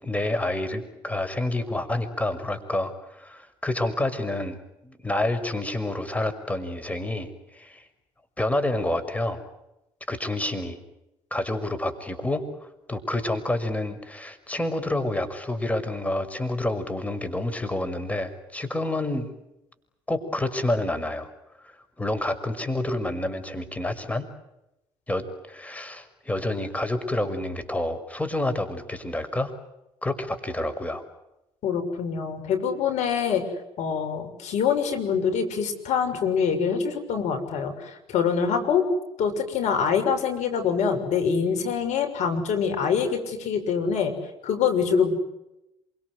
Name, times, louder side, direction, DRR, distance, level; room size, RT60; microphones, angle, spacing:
voice 1, 0.0-7.8 8.4-9.4 10.1-10.8 11.3-12.4 12.9-19.3 20.1-21.3 21.6-24.3 25.1-29.5 30.0-31.0, left 1 dB, 10° left, 9 dB, 5.9 m, -28 dB
voice 2, 31.6-33.4 33.8-38.9 39.2-44.1 44.4-45.2, left 6 dB, 60° left, 5 dB, 6.6 m, -25 dB
27.0 x 25.0 x 8.2 m, 0.90 s
hypercardioid pair, 55°, 13 cm